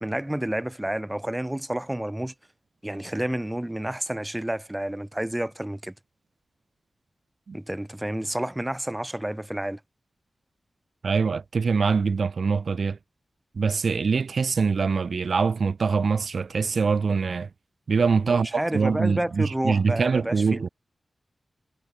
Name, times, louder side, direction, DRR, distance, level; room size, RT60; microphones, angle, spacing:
voice 1, 0.0-2.3 2.8-5.9 7.5-9.8 18.2-20.7, right 1 dB, 10° right, 0.4 m, -30 dB
voice 2, 11.0-13.0 13.6-17.5 17.9-20.7, right 5 dB, 65° right, 0.5 m, -24 dB
wide cardioid pair, 120°, 0 cm